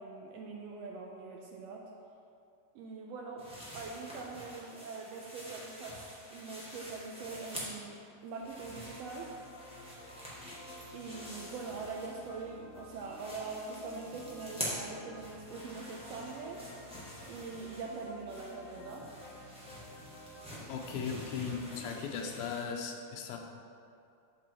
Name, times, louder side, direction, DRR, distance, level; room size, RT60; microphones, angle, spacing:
voice 1, 0.0-1.9 2.7-3.5 3.7-8.0 8.2-9.3 10.9-16.7 17.3-19.1, right 4 dB, 80° right, 0 dB, 1.5 m, -43 dB
sound 1, 3.4-8.0 8.3-12.5 12.7-22.6, equal, 5° right, 0.4 m, -47 dB
sound 2, 8.4-21.9, left 1 dB, 70° left, 1.8 m, -52 dB
voice 2, 20.7-23.4, left 6 dB, 85° left, 2 dB, 2.1 m, -37 dB
7.1 x 6.1 x 4.5 m, 2.5 s
omnidirectional pair, 3.4 m